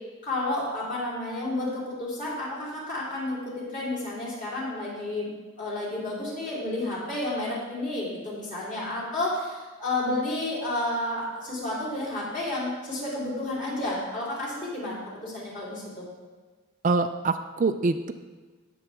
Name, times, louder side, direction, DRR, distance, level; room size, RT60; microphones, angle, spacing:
voice 1, 0.2-5.3 5.6-16.0, left 2 dB, 40° left, -6 dB, 3.6 m, -31 dB
voice 2, 16.8-18.1, right 3 dB, 35° right, 9 dB, 0.4 m, -25 dB
18.0 x 6.9 x 3.5 m, 1.3 s
head